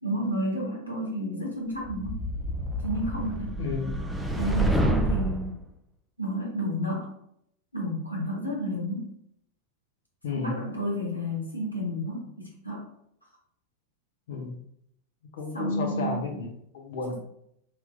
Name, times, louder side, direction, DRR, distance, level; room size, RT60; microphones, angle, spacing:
voice 1, 0.0-2.2 2.8-3.5 4.3-5.6 6.2-7.1 7.7-9.1 10.3-12.9 15.5-16.3, equal, 85° left, -3 dB, 1.1 m, -31 dB
sound 1, 1.8-5.5, right 1 dB, ahead, 0.4 m, -28 dB
voice 2, 3.6-4.1 10.2-10.6 14.3-14.5 15.3-16.5 16.7-17.2, left 4 dB, 60° left, 1 dB, 0.9 m, -32 dB
3.4 x 3.0 x 2.6 m, 0.73 s
figure-of-eight pair, 90°, 0 cm